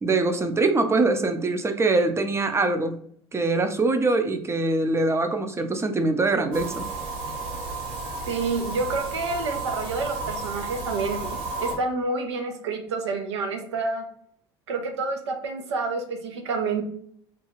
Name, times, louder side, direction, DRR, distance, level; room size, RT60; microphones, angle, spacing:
voice 1, 0.0-3.0 3.3-6.9, right 3 dB, 20° right, 7 dB, 0.4 m, -23 dB
sound 1, 6.5-11.8, right 3 dB, 75° right, 1.1 m, -33 dB
voice 2, 8.3-14.1 14.7-16.8, right 3 dB, 90° right, 5 dB, 0.5 m, -28 dB
2.5 x 2.3 x 3.0 m, 0.64 s
hypercardioid pair, 70°, 14 cm